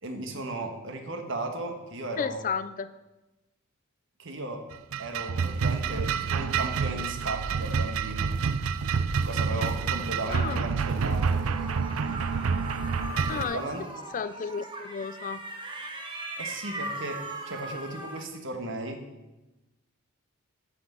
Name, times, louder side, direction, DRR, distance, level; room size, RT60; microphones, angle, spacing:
voice 1, 0.0-2.5 4.2-4.6 5.0-8.3 9.2-11.4 13.3-13.8 16.4-19.0, right 2 dB, 60° right, 5 dB, 1.4 m, -36 dB
voice 2, 2.2-2.9 10.3-10.6 13.3-13.7 14.1-15.4, left 6 dB, 40° left, 14 dB, 0.4 m, -32 dB
sound 1, 4.7-13.4, right 5 dB, 80° right, 0.5 m, -28 dB
sound 2, 11.0-18.2, right 2 dB, 20° right, 1.3 m, -39 dB
9.9 x 6.1 x 6.9 m, 1.1 s
head